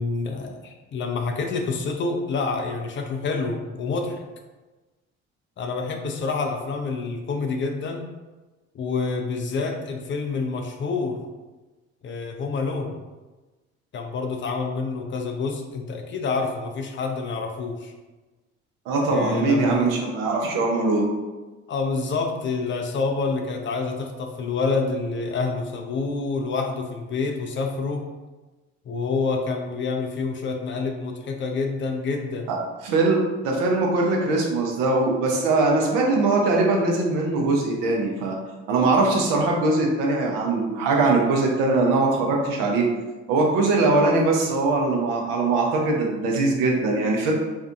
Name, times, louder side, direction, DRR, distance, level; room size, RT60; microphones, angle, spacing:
voice 1, 0.0-4.2 5.6-8.1 8.7-11.2 12.0-12.9 13.9-17.9 19.1-19.9 21.7-28.0 28.9-32.5, left 4 dB, 35° left, 3 dB, 0.4 m, -27 dB
voice 2, 18.9-21.1 32.5-32.6 32.8-38.4 38.7-42.9 43.3-47.3, right 3 dB, 75° right, 0 dB, 0.7 m, -21 dB
2.6 x 2.2 x 2.5 m, 1.2 s
hypercardioid pair, 60°, 33 cm